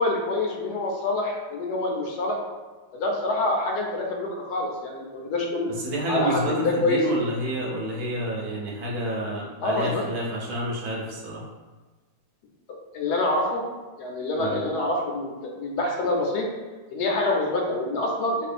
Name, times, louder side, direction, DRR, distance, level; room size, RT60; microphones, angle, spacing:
voice 1, 0.0-2.4 2.9-5.7 6.1-7.0 9.6-10.0 12.9-13.6 14.0-16.5 16.9-18.5, left 2 dB, 70° left, 0 dB, 1.1 m, -26 dB
voice 2, 5.8-11.4 14.4-14.6, right 1 dB, 65° right, -3 dB, 1.2 m, -29 dB
4.3 x 2.8 x 2.5 m, 1.3 s
omnidirectional pair, 1.8 m